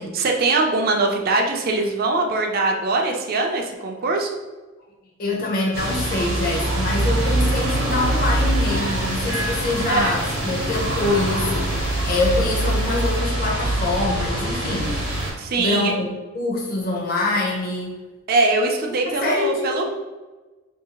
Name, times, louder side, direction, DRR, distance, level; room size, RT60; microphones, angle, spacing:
voice 1, 0.1-4.3 9.9-10.1 15.4-15.9 18.3-19.9, right 3 dB, 45° right, 2 dB, 0.3 m, -22 dB
voice 2, 5.2-15.0 15.6-16.1 16.3-18.0 18.9-19.8, left 2 dB, 45° left, -1 dB, 0.6 m, -25 dB
sound 1, 5.7-15.3, right 1 dB, 75° right, 0.8 m, -23 dB
Floor sanding, 8.7-15.0, left 1 dB, 70° left, 0.9 m, -37 dB
2.7 x 2.7 x 2.8 m, 1.2 s
head